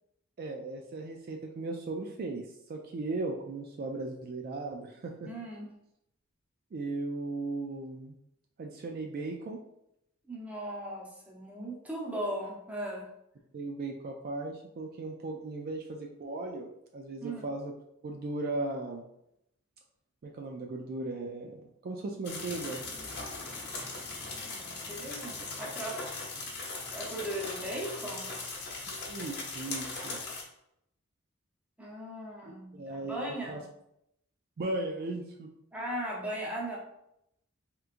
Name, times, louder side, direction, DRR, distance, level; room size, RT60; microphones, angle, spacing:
voice 1, 0.4-5.3 6.7-8.1 8.6-9.6 13.5-17.7 18.0-19.0 20.2-22.8 28.9-30.2 32.4-33.6 34.6-35.5, right 2 dB, 45° right, 1 dB, 0.3 m, -37 dB
voice 2, 5.2-5.7 10.3-13.1 17.2-17.5 24.5-26.0 26.9-28.3 31.8-33.6 35.7-36.8, right 1 dB, 5° right, -3 dB, 0.7 m, -38 dB
sound 1, 22.2-30.4, left 3 dB, 55° left, 0.9 m, -39 dB
3.5 x 3.0 x 2.5 m, 0.80 s
head